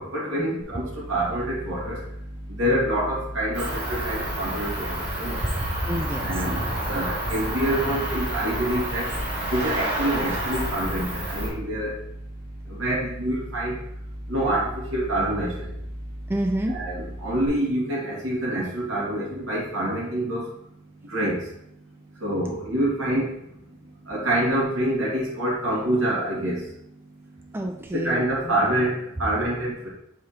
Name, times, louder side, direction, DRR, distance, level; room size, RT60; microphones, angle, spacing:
voice 1, 0.0-5.4 6.2-9.1 9.5-12.0 12.7-13.8 14.3-15.7 16.7-20.5 21.0-21.5 22.2-23.4 24.0-26.7 27.9-29.9, right 1 dB, 80° right, -5 dB, 2.3 m, -26 dB
sound 1, 0.6-17.5, equal, 25° left, 1.5 m, -38 dB
Cricket, 3.5-11.5, right 1 dB, 60° right, 2.5 m, -29 dB
voice 2, 5.6-6.3 16.3-16.8 27.5-28.5, right 1 dB, 10° right, 3 dB, 0.4 m, -29 dB
7.0 x 4.8 x 2.9 m, 0.78 s
head